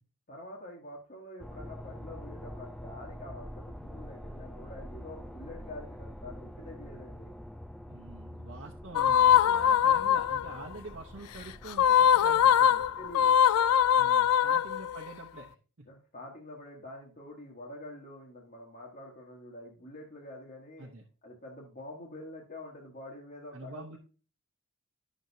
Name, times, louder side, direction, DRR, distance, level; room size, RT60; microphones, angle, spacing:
voice 1, 0.3-7.3 13.0-13.4 15.9-20.9 21.2-24.0, left 1 dB, 40° left, -3 dB, 1.2 m, -46 dB
sound 1, 1.4-15.0, equal, 5° left, 0.3 m, -46 dB
voice 2, 7.9-12.8 13.9-15.5 15.8-15.9 20.8-21.0 23.5-24.0, right 2 dB, 60° right, 0 dB, 0.9 m, -46 dB
sound 2, 9.0-10.6 11.7-15.1, left 9 dB, 85° left, 0.3 m, -22 dB
10.5 x 6.2 x 2.7 m, 0.37 s
head